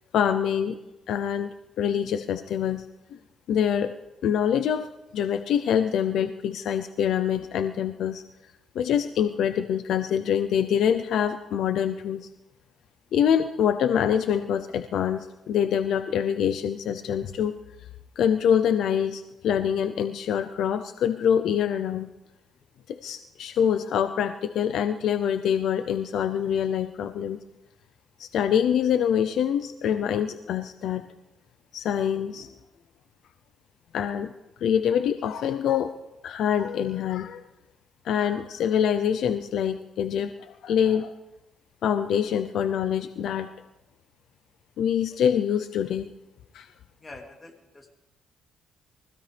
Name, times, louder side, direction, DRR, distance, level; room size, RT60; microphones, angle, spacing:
voice 1, 0.1-0.8 1.1-2.9 3.5-3.9 4.2-8.2 8.7-12.3 13.1-17.6 18.2-22.1 22.9-27.4 28.2-31.1 31.7-32.5 33.9-34.3 34.6-35.9 36.2-37.4 38.0-41.1 41.8-43.5 44.8-46.1 46.5-46.7, left 8 dB, 75° left, 9 dB, 0.6 m, -25 dB
voice 2, 47.0-47.9, left 2 dB, 25° left, 2 dB, 2.9 m, -45 dB
23.0 x 16.0 x 3.4 m, 0.99 s
cardioid pair, 90°, 0 cm